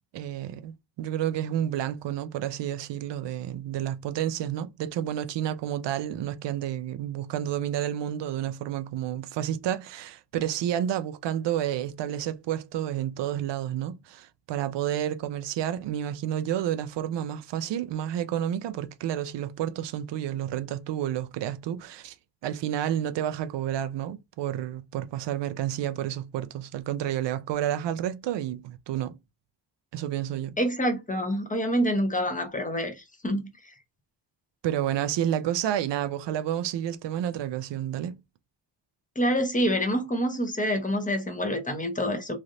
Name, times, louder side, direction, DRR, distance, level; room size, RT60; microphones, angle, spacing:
voice 1, 0.1-22.1 22.4-29.2 29.9-30.6 34.6-38.2, right 11 dB, 75° right, 0.5 m, -30 dB
voice 2, 30.6-33.7 39.2-42.4, equal, 20° left, 0.8 m, -27 dB
3.2 x 2.5 x 2.6 m
wide cardioid pair, 130°, 43 cm